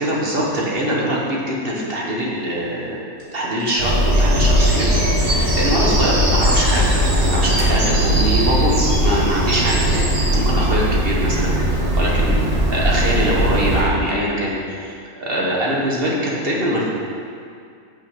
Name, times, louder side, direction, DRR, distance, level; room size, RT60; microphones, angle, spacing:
voice 1, 0.0-3.0 3.3-11.5 12.0-16.9, right 1 dB, 40° right, -4 dB, 1.3 m, -23 dB
sound 1, 3.2-4.5 4.8-5.3 5.6-8.4, equal, 65° right, 2.0 m, -35 dB
Bird vocalization bird call bird song, 3.8-13.8, equal, 85° right, 2.4 m, -18 dB
6.2 x 5.9 x 5.7 m, 2.3 s
omnidirectional pair, 1.6 m